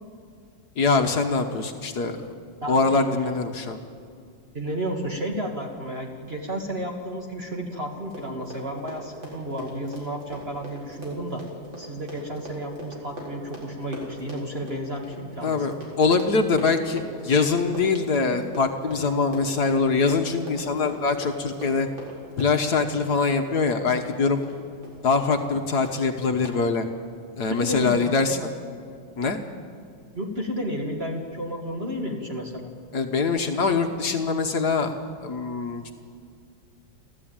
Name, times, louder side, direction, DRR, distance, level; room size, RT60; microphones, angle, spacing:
voice 1, 0.8-2.3 2.7-3.8 15.4-21.9 22.4-24.4 25.0-26.9 27.4-28.4 29.2-29.4 32.9-34.9 35.2-35.8, left 4 dB, 55° left, 5 dB, 1.6 m, -23 dB
voice 2, 2.6-3.4 4.5-11.4 11.8-15.7 27.5-28.5 30.2-32.7, equal, 30° right, 1 dB, 2.0 m, -32 dB
Run, 7.9-24.6 24.8-25.0 25.3-25.6 25.8-25.9 26.4-26.6, right 1 dB, 75° right, 5.2 m, -41 dB
29.5 x 12.5 x 8.9 m, 2.2 s
omnidirectional pair, 2.2 m